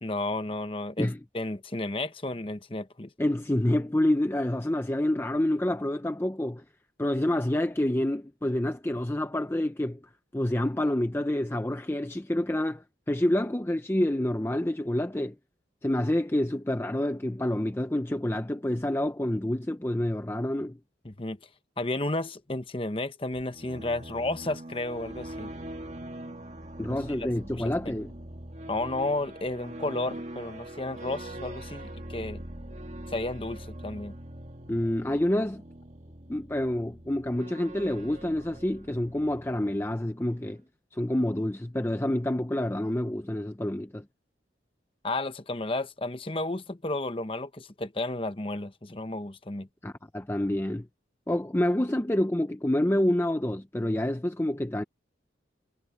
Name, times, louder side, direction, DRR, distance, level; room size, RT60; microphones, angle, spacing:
voice 1, 0.0-1.1 1.3-3.1 21.0-21.4 21.8-25.5 26.9-27.3 27.6-27.7 28.7-32.4 33.1-34.1 45.0-49.7, left 2 dB, 30° left, 1.0 m, -32 dB
voice 2, 3.2-6.6 7.0-15.4 15.8-20.8 26.8-28.1 34.7-35.6 36.3-40.6 40.9-44.0 49.8-50.9 51.3-54.8, left 1 dB, 10° left, 0.5 m, -28 dB
sound 1, 23.3-40.0, right 1 dB, 35° right, 1.7 m, -42 dB
head